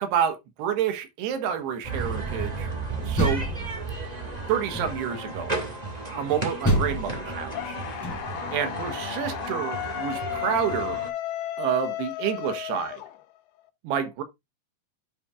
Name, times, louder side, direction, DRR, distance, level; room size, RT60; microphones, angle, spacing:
voice 1, 0.0-2.7 3.0-3.5 4.5-5.5 6.2-7.8 8.5-11.0 11.6-13.0 13.8-14.2, right 9 dB, 80° right, 3.2 m, -28 dB
sound 1, 1.8-11.1, right 3 dB, 45° right, 0.5 m, -34 dB
Door, 2.9-4.1 4.7-5.3 6.6-8.5, equal, 5° left, 2.3 m, -28 dB
sound 2, 7.5-13.6, left 13 dB, 90° left, 3.2 m, -34 dB
11.5 x 5.8 x 2.4 m
omnidirectional pair, 4.8 m